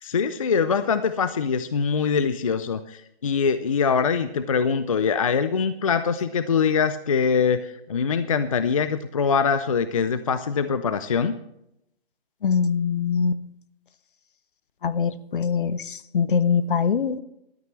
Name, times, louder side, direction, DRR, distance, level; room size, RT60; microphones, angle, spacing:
voice 1, 0.0-11.4, left 6 dB, 35° left, 12 dB, 0.4 m, -23 dB
voice 2, 12.4-13.4 14.8-17.2, left 6 dB, 55° left, 15 dB, 0.8 m, -23 dB
16.0 x 12.5 x 3.2 m, 0.79 s
hypercardioid pair, 155°, 30 cm